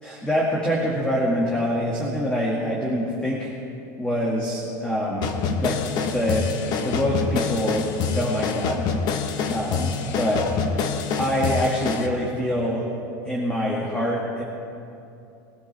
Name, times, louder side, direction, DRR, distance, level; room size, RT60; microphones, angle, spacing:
voice 1, 0.0-3.5 4.0-5.3 5.6-6.5 6.8-8.9 9.5-10.5 11.2-12.9 13.3-14.4, equal, 10° left, -4 dB, 2.0 m, -25 dB
sound 1, 5.2-12.1, left 6 dB, 45° left, 1.1 m, -26 dB
21.5 x 12.5 x 3.4 m, 2.7 s
supercardioid pair, 130°, 9 cm